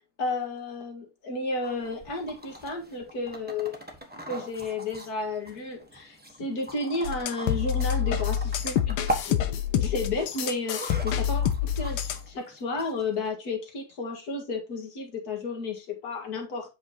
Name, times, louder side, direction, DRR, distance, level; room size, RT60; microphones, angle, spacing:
voice 1, 0.2-3.8 4.3-9.0 9.3-16.7, left 3 dB, 45° left, 2.2 m, -32 dB
sound 1, 1.6-13.3, right 1 dB, 5° right, 0.8 m, -40 dB
sound 2, 7.0-12.3, left 9 dB, 80° left, 1.6 m, -27 dB
7.7 x 5.5 x 2.9 m
omnidirectional pair, 2.3 m